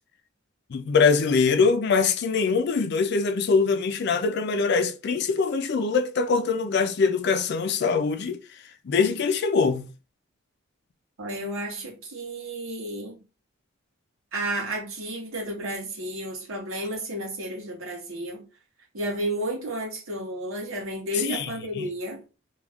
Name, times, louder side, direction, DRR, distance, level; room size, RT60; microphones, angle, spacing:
voice 1, 0.7-8.4 8.8-9.9 21.3-21.5 21.8-21.9, left 5 dB, 55° left, 0.4 m, -23 dB
voice 2, 11.2-13.2 14.3-18.4 18.9-22.2, right 1 dB, 90° right, 0.9 m, -32 dB
2.3 x 2.3 x 3.4 m
head